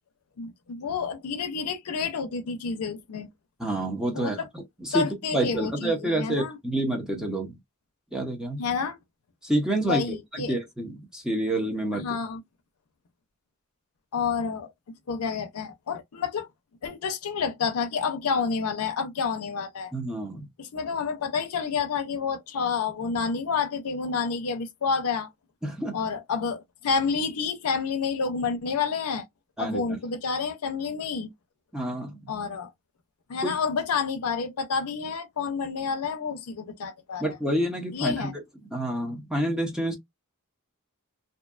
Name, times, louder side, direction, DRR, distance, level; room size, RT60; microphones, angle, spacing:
voice 1, 0.4-3.3 4.1-4.5 4.9-6.6 8.6-9.0 9.8-10.5 11.9-12.4 14.1-16.5 16.8-19.9 20.6-25.3 25.9-29.2 29.6-31.3 32.3-32.7 33.3-37.2 37.9-38.3, left 5 dB, 90° left, 0.5 m, -29 dB
voice 2, 3.6-4.4 4.8-7.6 8.1-8.6 9.4-10.0 10.5-12.1 19.9-20.5 25.6-26.0 29.6-30.0 31.7-32.2 33.4-33.5 37.2-38.3 38.7-40.0, right 1 dB, 5° right, 0.6 m, -28 dB
2.6 x 2.2 x 2.3 m
head